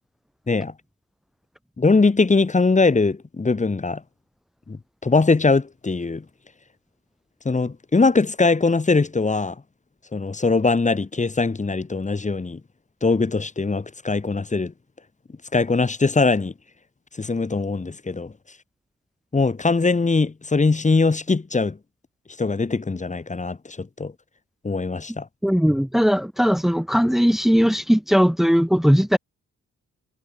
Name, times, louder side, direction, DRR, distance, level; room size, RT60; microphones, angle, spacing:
voice 1, 1.8-4.0 4.7-6.2 7.5-9.6 10.1-12.6 13.0-14.7 15.5-16.5 17.2-18.3 19.3-21.8 22.4-24.1 24.6-25.3, left 3 dB, 25° left, 3.7 m, -21 dB
voice 2, 25.4-29.2, equal, ahead, 2.8 m, -18 dB
cardioid pair, 120°, 29 cm